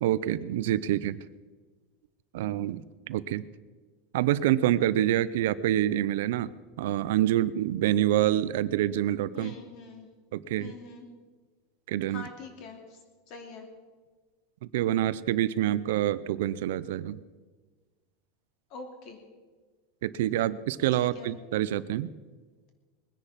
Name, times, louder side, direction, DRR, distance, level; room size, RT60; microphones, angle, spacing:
voice 1, 0.0-1.2 2.3-3.4 4.1-6.5 6.8-9.5 10.3-10.8 11.9-12.3 14.7-17.2 20.0-22.1, right 13 dB, 75° right, 16 dB, 0.6 m, -27 dB
voice 2, 9.3-10.1 10.6-11.1 12.1-13.0 13.3-13.7 18.7-19.2 21.0-21.3, left 4 dB, 40° left, 5 dB, 2.8 m, -44 dB
21.0 x 10.0 x 5.8 m, 1.4 s
supercardioid pair, 165°, 0 cm